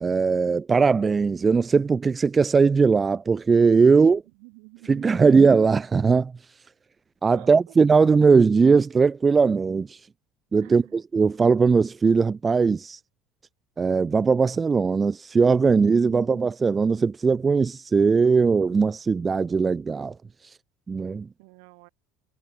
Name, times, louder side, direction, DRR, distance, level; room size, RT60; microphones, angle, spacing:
voice 1, 0.0-4.2 4.8-6.3 7.2-10.0 10.5-13.0 13.8-20.1 20.9-21.3, right 5 dB, 25° right, 0.5 m, -19 dB
voice 2, 4.4-5.3 7.3-7.5 10.6-10.9 16.2-16.4 21.4-21.9, right 36 dB, 80° right, 2.6 m, -47 dB
supercardioid pair, 100°, 0 cm